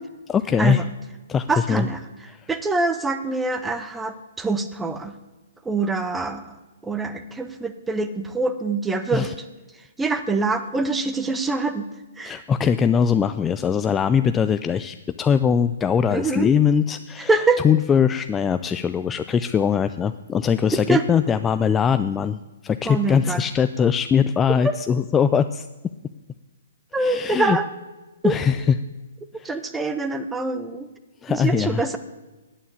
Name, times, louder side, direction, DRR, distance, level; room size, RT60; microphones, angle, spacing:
voice 1, 0.3-0.8 1.3-1.8 2.4-2.5 9.1-9.3 12.2-17.3 17.6-25.7 27.0-27.6 28.2-28.6 29.4-29.5 31.2-31.8, left 7 dB, 15° left, 10 dB, 0.3 m, -21 dB
voice 2, 1.5-5.1 5.6-9.4 9.7-11.9 12.2-12.4 16.1-16.5 17.3-17.6 20.9-21.0 22.8-23.4 24.6-24.7 26.9-27.7 28.2-28.4 29.4-30.9 31.3-32.0, right 3 dB, 10° right, 9 dB, 0.9 m, -25 dB
9.3 x 8.9 x 8.5 m, 1.2 s
figure-of-eight pair, 125°, 0 cm